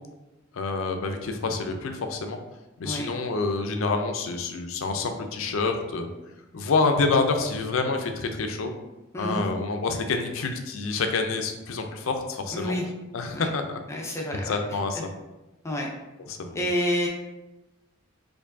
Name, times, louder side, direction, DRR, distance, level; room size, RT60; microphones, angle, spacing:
voice 1, 0.5-2.4 2.8-6.1 6.5-8.7 9.1-12.7 13.1-13.8 14.4-15.1 16.3-16.6, left 3 dB, 75° left, 5 dB, 0.5 m, -27 dB
voice 2, 9.1-9.5 12.5-12.8 13.3-13.5 13.9-14.6 15.6-15.9 16.5-17.1, equal, 15° left, -2 dB, 0.5 m, -28 dB
4.4 x 2.6 x 2.6 m, 1.0 s
head